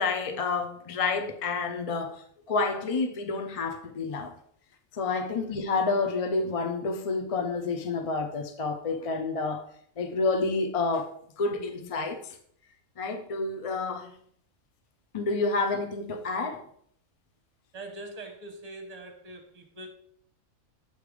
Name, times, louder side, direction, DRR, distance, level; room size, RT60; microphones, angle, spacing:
voice 1, 0.0-4.3 4.9-9.7 10.0-11.1 11.4-12.4 13.0-14.1 15.1-16.6, left 3 dB, 45° left, 0.4 m, -29 dB
voice 2, 17.7-19.9, right 2 dB, 30° right, 1.1 m, -42 dB
7.9 x 3.3 x 5.0 m
omnidirectional pair, 1.4 m